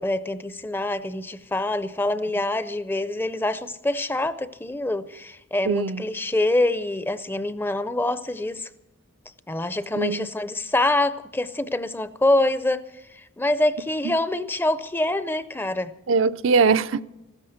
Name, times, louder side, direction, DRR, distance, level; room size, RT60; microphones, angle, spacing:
voice 1, 0.0-8.7 9.5-12.8 13.1-15.9, left 2 dB, 10° left, 0.5 m, -25 dB
voice 2, 5.7-6.0 10.0-10.3 14.0-14.1 16.1-17.0, right 5 dB, 70° right, 0.5 m, -21 dB
15.5 x 13.5 x 6.5 m
head